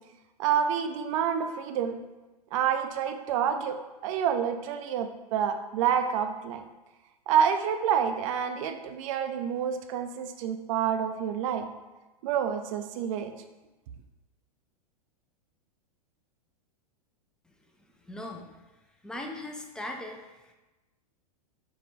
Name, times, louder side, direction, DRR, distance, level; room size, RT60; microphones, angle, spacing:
voice 1, 0.4-2.0 2.5-3.8 4.0-6.6 7.3-11.7 12.2-13.3, right 8 dB, 55° right, 7 dB, 0.5 m, -28 dB
voice 2, 18.1-18.5 19.0-20.2, left 1 dB, 5° left, 2 dB, 0.4 m, -38 dB
4.6 x 2.3 x 3.8 m, 1.1 s
hypercardioid pair, 105°, 20 cm